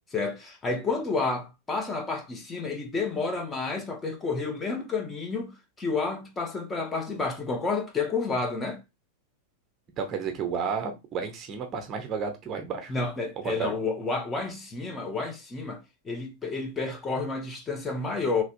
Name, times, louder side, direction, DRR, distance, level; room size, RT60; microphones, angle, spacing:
voice 1, 0.1-8.8 12.9-18.4, left 4 dB, 15° left, 0.8 m, -30 dB
voice 2, 10.0-12.9 13.4-13.7, right 6 dB, 30° right, 0.8 m, -32 dB
3.3 x 2.8 x 2.6 m
figure-of-eight pair, 90°, 0 cm